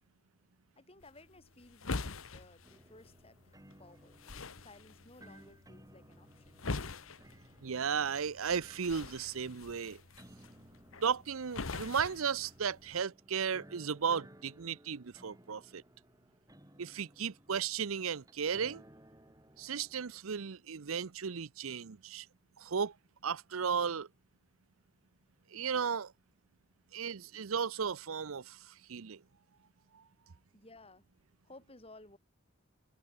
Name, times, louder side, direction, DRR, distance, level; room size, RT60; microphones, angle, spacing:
voice 1, 0.8-4.2 4.6-6.8 30.5-31.0 31.4-32.2, left 2 dB, 30° left, 4.9 m, -57 dB
sound 1, 1.0-13.0, left 3 dB, 75° left, 1.3 m, -45 dB
sound 2, 2.6-20.2, right 1 dB, 15° right, 5.1 m, -59 dB
voice 2, 7.6-10.0 11.0-15.8 16.8-18.8 19.6-22.3 22.6-22.9 23.2-24.1 25.5-26.1 26.9-28.6 28.9-29.2, right 6 dB, 80° right, 0.7 m, -35 dB
head